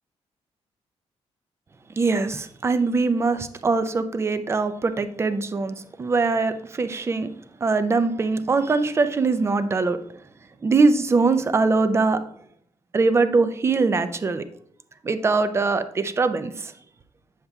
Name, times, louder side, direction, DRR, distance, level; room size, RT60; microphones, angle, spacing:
voice 1, 2.0-7.3 7.6-10.0 10.6-12.2 12.9-14.4 15.0-16.7, right 4 dB, 25° right, 10 dB, 0.5 m, -22 dB
8.0 x 7.1 x 2.3 m, 0.65 s
cardioid pair, 135°, 11 cm